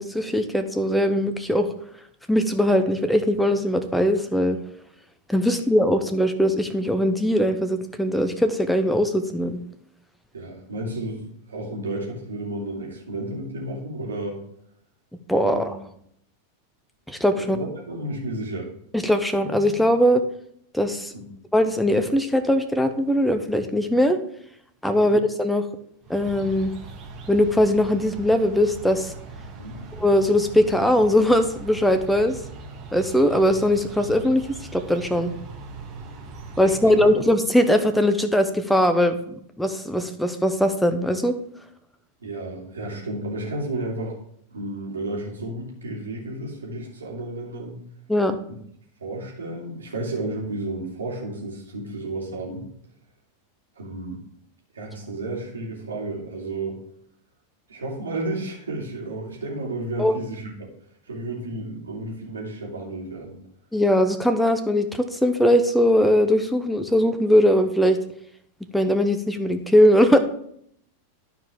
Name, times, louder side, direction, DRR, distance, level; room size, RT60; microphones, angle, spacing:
voice 1, 0.0-1.7 2.3-4.6 5.3-9.6 15.3-15.8 17.1-17.6 18.9-20.2 20.7-21.1 21.5-24.2 24.8-25.7 26.1-26.7 27.3-29.1 30.0-32.4 32.9-34.4 34.7-35.3 36.6-41.3 48.1-48.4 60.0-60.2 63.7-68.0 68.7-70.2, equal, 5° left, 9 dB, 0.7 m, -20 dB
voice 2, 10.3-14.4 15.5-15.7 17.4-18.7 21.1-21.2 25.0-25.2 29.5-29.8 36.9-37.1 42.2-44.2 44.5-47.8 49.0-52.7 53.8-54.2 54.7-56.8 57.7-60.5 61.1-63.4, right 2 dB, 70° right, -2 dB, 2.5 m, -32 dB
sound 1, 26.0-37.4, right 3 dB, 30° right, 1.6 m, -40 dB
12.5 x 4.6 x 3.6 m, 0.68 s
figure-of-eight pair, 90°, 0 cm